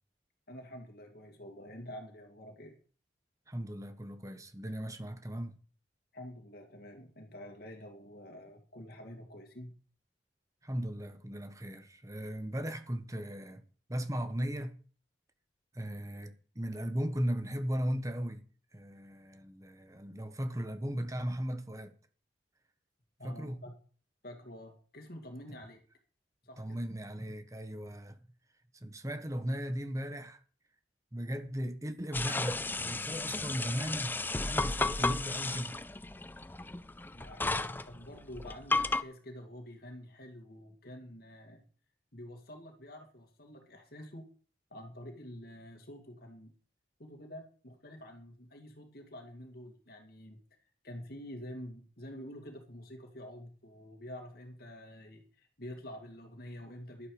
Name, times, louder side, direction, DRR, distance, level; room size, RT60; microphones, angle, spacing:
voice 1, 0.5-2.8 6.1-9.7 23.2-23.7 24.2-25.8 26.4-26.8 37.1-41.6 42.1-44.2 44.7-46.5 47.0-50.4 50.8-57.1, left 1 dB, 55° left, 2.5 m, -48 dB
voice 2, 3.5-5.6 10.6-13.6 13.9-14.8 15.7-18.4 18.7-21.9 23.2-23.6 26.6-28.2 28.7-30.4 31.1-35.8, equal, 20° right, 1.3 m, -37 dB
wash the dishes, 32.1-39.0, left 3 dB, 10° left, 0.5 m, -33 dB
12.0 x 11.5 x 5.1 m
head